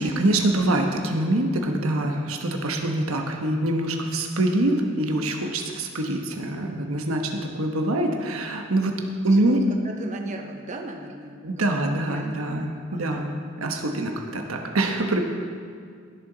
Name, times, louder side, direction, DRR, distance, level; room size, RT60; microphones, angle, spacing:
voice 1, 0.0-9.6 11.4-13.4 13.6-15.2, right 1 dB, 85° right, 3 dB, 1.2 m, -25 dB
voice 2, 9.8-13.3, right 2 dB, 35° right, 3 dB, 0.7 m, -38 dB
17.0 x 7.0 x 4.0 m, 2.1 s
head